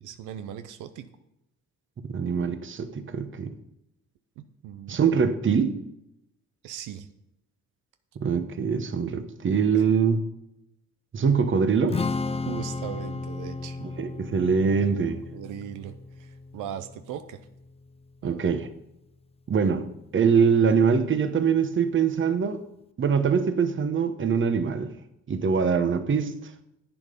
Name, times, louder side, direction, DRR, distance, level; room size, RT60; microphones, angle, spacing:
voice 1, 0.0-1.1 4.4-5.0 6.6-7.1 9.7-9.8 12.3-13.8 15.3-17.5 18.2-18.5, right 10 dB, 90° right, 0.8 m, -39 dB
voice 2, 2.1-3.5 4.9-5.7 8.2-10.2 11.1-12.0 14.0-15.2 18.2-18.7 19.5-22.6 23.0-24.9 25.3-26.3, right 6 dB, 40° right, 1.1 m, -23 dB
Strum, 11.9-18.2, left 4 dB, 20° left, 0.5 m, -34 dB
10.5 x 8.5 x 5.2 m
cardioid pair, 90°, 30 cm